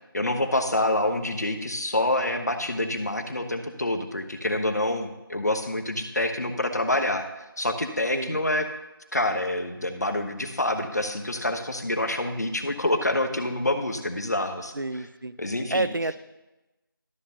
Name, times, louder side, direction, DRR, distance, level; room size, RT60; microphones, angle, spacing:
voice 1, 0.1-8.7 9.1-15.1 15.4-15.9, left 1 dB, 45° left, 6 dB, 1.0 m, -27 dB
voice 2, 14.7-15.3 15.7-16.2, right 2 dB, 65° right, 13 dB, 0.6 m, -29 dB
13.0 x 7.2 x 2.8 m, 1.0 s
figure-of-eight pair, 170°, 12 cm